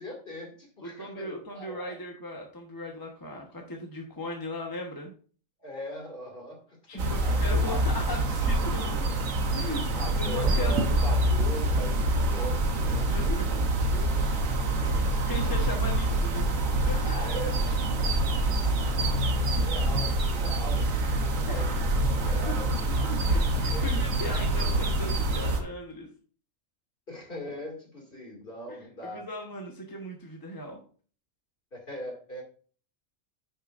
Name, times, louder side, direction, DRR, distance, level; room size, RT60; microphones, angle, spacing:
voice 1, 0.0-2.0 5.6-7.8 9.9-14.4 14.8-15.3 17.2-20.9 21.2-22.7 23.7-24.0 27.1-29.3 31.7-32.4, equal, 40° left, 0 dB, 2.7 m, -41 dB
voice 2, 0.8-5.1 6.9-9.2 9.5-10.8 13.1-13.6 14.7-14.8 15.2-17.3 21.5-21.7 22.2-22.6 23.0-26.1 29.1-30.8, left 1 dB, 15° left, 1 dB, 1.1 m, -38 dB
sound 1, 7.0-25.6, right 1 dB, 75° right, 1.4 m, -26 dB
10.0 x 6.9 x 2.5 m, 0.41 s
omnidirectional pair, 1.4 m